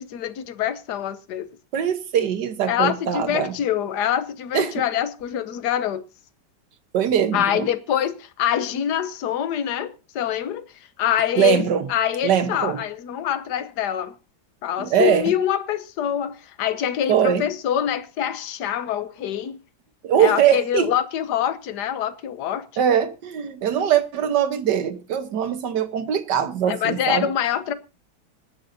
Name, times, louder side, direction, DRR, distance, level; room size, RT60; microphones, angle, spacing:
voice 1, 0.0-1.5 2.7-6.0 7.3-10.6 11.0-14.1 14.6-19.6 20.2-22.7 26.7-27.7, left 10 dB, 70° left, 1.5 m, -25 dB
voice 2, 1.7-3.5 4.5-4.7 6.9-7.7 11.4-11.9 12.2-12.8 14.8-15.2 17.1-17.4 20.0-20.9 22.8-27.3, right 9 dB, 80° right, 1.8 m, -21 dB
25.5 x 9.5 x 2.7 m
omnidirectional pair, 1.8 m